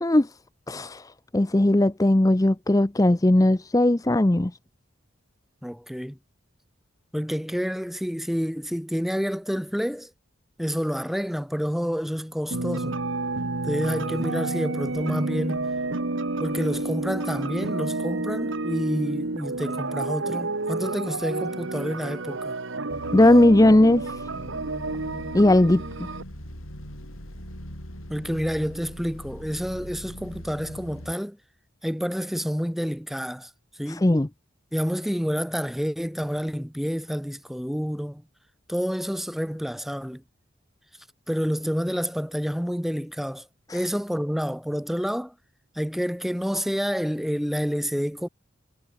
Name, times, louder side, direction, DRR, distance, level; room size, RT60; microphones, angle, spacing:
voice 1, 0.7-4.5 23.1-24.2 25.3-25.8 33.9-34.3 43.7-43.8, left 1 dB, 15° left, 0.5 m, -18 dB
voice 2, 5.6-6.2 7.1-10.1 10.6-13.0 13.6-15.7 16.4-22.5 28.1-31.4 31.8-33.5 33.8-34.1 34.7-38.2 38.7-40.2 41.3-43.5 43.7-45.3 45.8-48.3, equal, ahead, 2.2 m, -28 dB
sound 1, 12.5-26.2, right 2 dB, 70° right, 1.4 m, -30 dB
sound 2, 22.9-31.1, equal, 85° left, 7.6 m, -41 dB
head